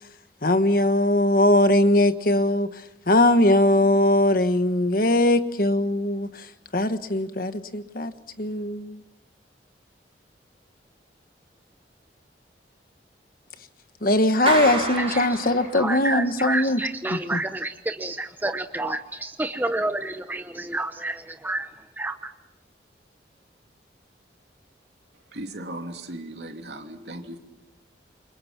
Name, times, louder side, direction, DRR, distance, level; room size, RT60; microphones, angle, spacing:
voice 1, 0.4-2.7 3.1-6.4 6.7-8.1 8.4-9.0 14.0-16.8 17.1-17.4, left 1 dB, 50° left, 1.3 m, -20 dB
Clapping, 14.5-16.2, right 3 dB, 30° right, 5.7 m, -29 dB
voice 2, 15.7-21.7 22.0-22.3, right 2 dB, 10° right, 0.9 m, -29 dB
voice 3, 25.3-27.4, right 1 dB, 70° right, 2.9 m, -37 dB
29.0 x 24.5 x 6.0 m
head